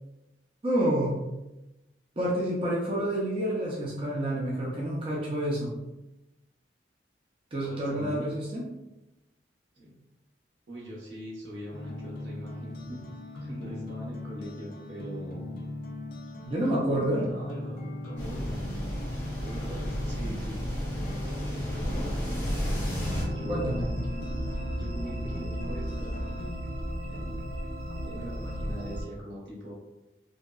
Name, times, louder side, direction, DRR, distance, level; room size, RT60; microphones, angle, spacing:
voice 1, 0.6-1.2 2.2-5.7 7.5-8.7 16.5-17.2 23.5-23.9, right 1 dB, 30° right, -5 dB, 0.4 m, -28 dB
voice 2, 7.6-8.3 9.7-10.0 10.7-13.1 13.3-15.5 17.1-17.8 18.0-18.7 19.4-23.9 24.7-26.2 27.1-27.4 28.0-29.7, equal, 85° right, -6 dB, 1.0 m, -42 dB
sound 1, 11.7-26.5, left 1 dB, 50° left, 0.3 m, -39 dB
sound 2, 18.2-23.2, equal, 15° left, 0.7 m, -33 dB
sound 3, 22.9-29.0, equal, 50° right, 0.8 m, -34 dB
2.6 x 2.2 x 2.2 m, 0.99 s
head